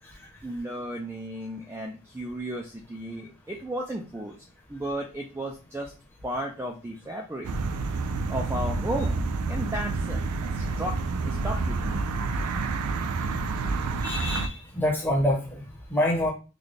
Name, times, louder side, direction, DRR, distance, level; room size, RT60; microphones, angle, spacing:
voice 1, 0.4-4.4 4.7-5.9 6.2-7.5 8.3-10.2 10.5-12.0, right 1 dB, 10° right, 0 dB, 0.3 m, -34 dB
sound 1, 7.4-14.5, right 3 dB, 85° right, 0.4 m, -28 dB
voice 2, 14.0-15.6 15.9-16.3, left 1 dB, 10° left, -2 dB, 0.9 m, -26 dB
3.9 x 2.3 x 3.3 m, 0.33 s
head